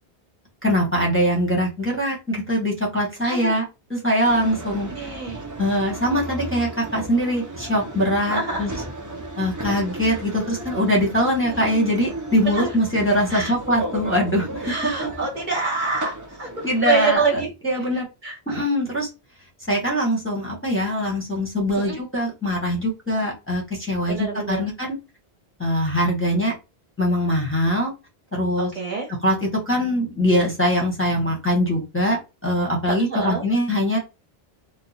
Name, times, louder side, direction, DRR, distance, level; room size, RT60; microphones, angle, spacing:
voice 1, 0.6-5.1 5.6-8.7 9.4-15.2 16.6-18.0 18.5-19.1 19.7-25.0 25.6-26.5 27.0-27.9 28.3-28.7 29.2-34.0, equal, 15° left, -3 dB, 1.1 m, -22 dB
voice 2, 3.2-3.5 4.9-5.4 8.3-8.7 11.5-11.6 12.4-12.7 13.3-13.5 14.6-17.5 18.2-18.6 21.7-22.0 24.1-24.7 28.6-29.1 32.9-33.4, right 4 dB, 50° right, 0 dB, 1.4 m, -26 dB
sound 1, 4.2-17.2, right 1 dB, 25° right, 0.5 m, -35 dB
3.0 x 2.2 x 4.0 m, 0.27 s
omnidirectional pair, 1.0 m